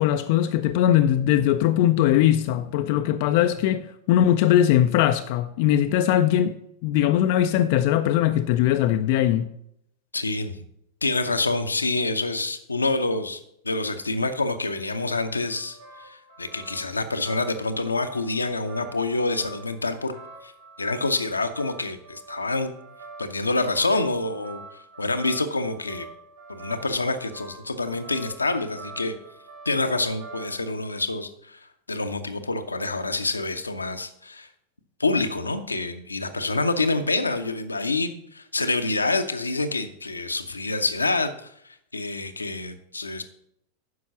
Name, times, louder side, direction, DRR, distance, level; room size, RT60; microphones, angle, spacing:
voice 1, 0.0-6.6 6.8-9.5, left 11 dB, 50° left, 0.4 m, -20 dB
voice 2, 10.1-10.6 11.0-15.8 16.0-20.1 20.4-20.5 20.8-22.7 23.2-24.6 25.0-26.1 26.5-29.1 29.6-31.6 31.9-34.5 35.0-41.5 41.9-43.2, left 3 dB, 80° left, 0.8 m, -27 dB
sound 1, 15.3-30.7, right 3 dB, 70° right, 2.6 m, -46 dB
9.6 x 6.0 x 5.7 m
figure-of-eight pair, 90°, 0 cm